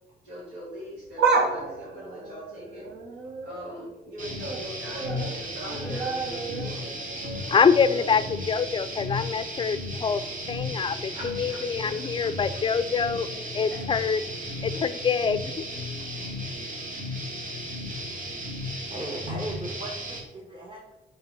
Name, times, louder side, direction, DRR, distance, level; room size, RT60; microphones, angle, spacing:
voice 1, 0.2-2.9 3.4-6.9 7.9-8.0 10.9-11.6 11.9-12.3 13.2-13.9 14.5-14.8, equal, 90° right, -7 dB, 2.0 m, -41 dB
sound 1, 1.0-3.8 4.2-4.6 4.9-8.9 9.2-9.3 10.3-10.4, right 4 dB, 70° right, 1.0 m, -31 dB
sound 2, 4.2-20.2, left 1 dB, 50° right, 1.7 m, -35 dB
voice 2, 7.2-10.2 10.5-13.3 13.5-14.2 14.6-15.7, left 6 dB, 30° left, 14 dB, 0.4 m, -25 dB
voice 3, 18.9-20.9, right 2 dB, 30° right, -3 dB, 1.4 m, -37 dB
4.8 x 4.3 x 4.9 m, 0.95 s
supercardioid pair, 60°, 18 cm